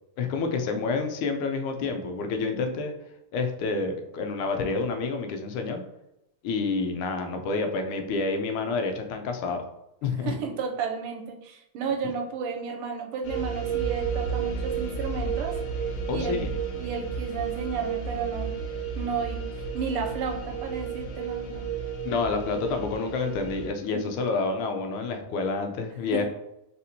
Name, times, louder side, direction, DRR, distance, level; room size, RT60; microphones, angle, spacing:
voice 1, 0.2-2.9 3.3-5.8 6.4-9.6 10.0-10.3 16.1-16.5 22.0-26.3, left 4 dB, 85° left, 5 dB, 1.5 m, -28 dB
voice 2, 10.2-15.6 16.1-18.5 19.0-19.5 19.7-21.6 23.9-24.1 26.1-26.3, right 6 dB, 85° right, 3 dB, 1.5 m, -33 dB
sound 1, 13.2-23.7, right 6 dB, 70° left, 1.3 m, -32 dB
4.2 x 3.4 x 2.7 m, 0.89 s
omnidirectional pair, 2.3 m